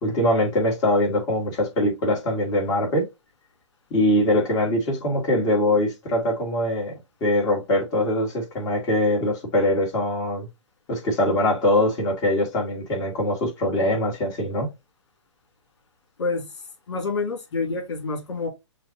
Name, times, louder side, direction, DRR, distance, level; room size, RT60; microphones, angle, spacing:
voice 1, 0.0-3.1 3.9-10.5 10.9-14.7, left 1 dB, 25° left, 2.0 m, -22 dB
voice 2, 16.9-18.5, left 3 dB, 60° left, 2.8 m, -27 dB
6.3 x 2.6 x 2.7 m
hypercardioid pair, 135°, 16 cm